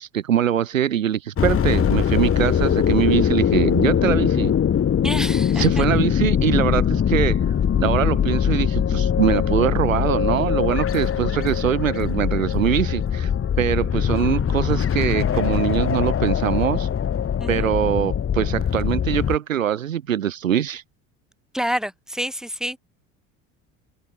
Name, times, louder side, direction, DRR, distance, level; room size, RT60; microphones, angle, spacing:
voice 1, 0.0-4.5 5.5-13.3 13.6-16.9 17.5-20.8, right 10 dB, 80° right, 1.6 m, -23 dB
sound 1, 1.4-19.4, left 8 dB, 35° left, 3.6 m, -21 dB
voice 2, 5.0-5.8 17.4-17.7 21.5-22.8, equal, ahead, 7.4 m, -28 dB
figure-of-eight pair, 65°, 39 cm